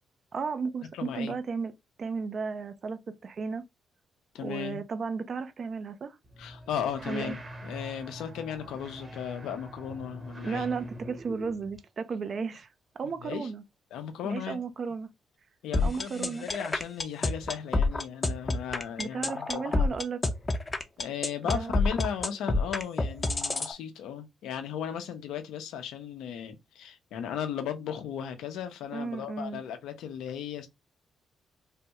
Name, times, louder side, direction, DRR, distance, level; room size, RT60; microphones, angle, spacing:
voice 1, 0.3-1.7 2.0-3.6 4.4-6.2 7.1-7.3 10.4-12.7 13.0-13.6 14.2-15.1 15.8-16.5 19.0-20.2 21.5-21.7 28.9-29.6, right 5 dB, 50° right, 0.5 m, -34 dB
voice 2, 0.9-1.4 4.3-4.8 6.4-10.7 13.2-13.5 13.9-14.6 15.6-20.0 21.0-30.7, left 8 dB, 85° left, 0.6 m, -36 dB
sound 1, 6.2-11.8, equal, 30° right, 1.0 m, -44 dB
sound 2, 15.7-23.7, left 3 dB, 30° left, 0.6 m, -27 dB
3.4 x 2.2 x 2.9 m
cardioid pair, 70°, 0 cm